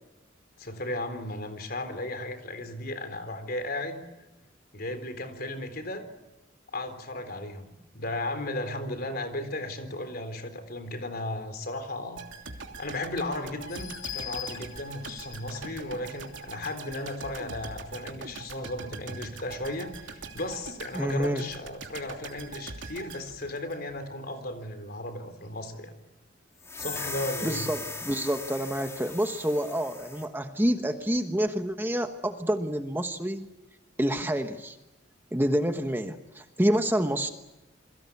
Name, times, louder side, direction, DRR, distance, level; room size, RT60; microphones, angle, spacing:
voice 1, 0.6-4.0 4.7-6.0 6.7-12.2 12.8-25.9 26.8-27.7, left 1 dB, 50° left, 8 dB, 3.8 m, -35 dB
sound 1, 12.2-24.2 24.5-24.6, right 4 dB, 75° right, 3.0 m, -43 dB
sound 2, 13.6-18.1 18.6-18.7 19.1-19.2, left 10 dB, 85° left, 3.0 m, -43 dB
voice 2, 20.9-21.4 27.4-33.5 34.0-34.8 35.3-37.3, equal, 10° right, 6 dB, 1.2 m, -28 dB
slope crash, 26.6-30.3, left 3 dB, 15° left, 4.0 m, -38 dB
28.5 x 23.0 x 8.5 m, 0.97 s
head